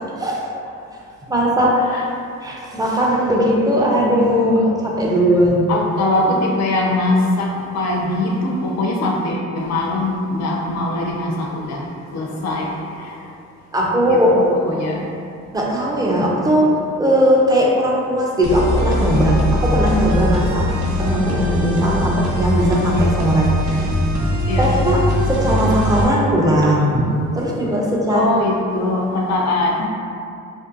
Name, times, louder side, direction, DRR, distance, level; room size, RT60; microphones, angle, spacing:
voice 1, 0.2-0.5 1.3-1.8 2.4-5.7 13.7-14.3 15.5-20.7 21.0-24.0 24.6-27.1 27.3-28.3, equal, 15° right, -3 dB, 0.4 m, -18 dB
voice 2, 5.7-13.2 14.4-15.1 24.5-24.7 28.1-29.9, left 2 dB, 60° left, -1 dB, 0.5 m, -22 dB
sound 1, 18.4-26.0, left 1 dB, 75° right, 0.6 m, -21 dB
2.6 x 2.1 x 2.5 m, 2.5 s
cardioid pair, 90°, 30 cm